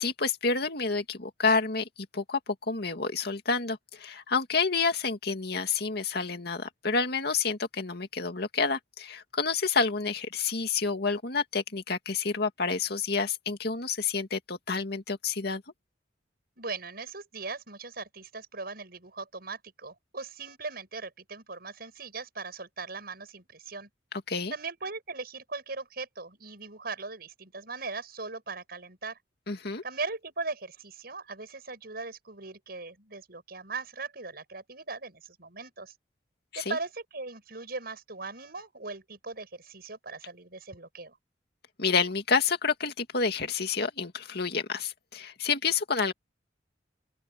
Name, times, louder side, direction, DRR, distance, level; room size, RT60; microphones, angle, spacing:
voice 1, 0.0-1.9 2.1-15.6 24.3-24.5 29.5-29.8 36.5-36.8 41.8-46.1, left 4 dB, 65° left, 2.3 m, -29 dB
voice 2, 16.6-23.9 24.5-29.2 29.8-35.9 36.5-41.2, right 3 dB, 60° right, 7.9 m, -39 dB
open air
head